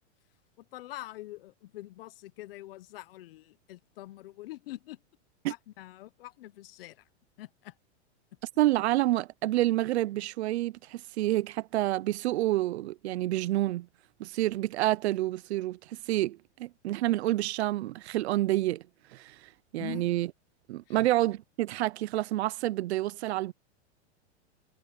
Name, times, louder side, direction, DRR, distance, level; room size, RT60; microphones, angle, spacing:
voice 1, 0.6-5.0 5.5-7.0 7.4-7.7 19.8-20.1 20.9-21.0, left 16 dB, 55° left, 0.9 m, -44 dB
voice 2, 8.6-13.9 14.2-18.8 19.1-19.4 19.7-20.3 20.7-23.5, right 16 dB, 65° right, 0.6 m, -28 dB
supercardioid pair, 160°, 35 cm